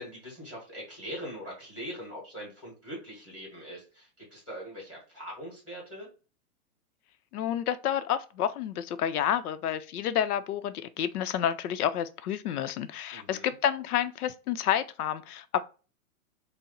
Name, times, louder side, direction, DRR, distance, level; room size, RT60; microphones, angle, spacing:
voice 1, 0.0-6.1 13.1-13.5, equal, ahead, 1.1 m, -42 dB
voice 2, 7.3-15.6, left 10 dB, 85° left, 0.6 m, -29 dB
4.1 x 2.1 x 3.8 m
hypercardioid pair, 170°, 44 cm